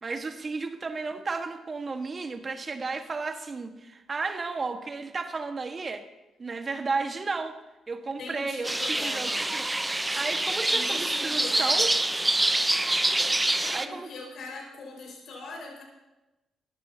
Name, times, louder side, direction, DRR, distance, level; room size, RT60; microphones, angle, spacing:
voice 1, 0.0-6.1 6.4-7.6 7.9-8.7 9.0-9.7 10.1-11.9 13.7-14.1, right 4 dB, 40° right, 7 dB, 1.6 m, -33 dB
voice 2, 8.2-9.4 10.7-12.0 13.5-15.8, left 3 dB, 60° left, 0 dB, 5.5 m, -41 dB
sound 1, 8.6-13.9, right 1 dB, 15° right, 0.8 m, -26 dB
19.5 x 14.5 x 2.9 m, 1.0 s
hypercardioid pair, 45°, 0 cm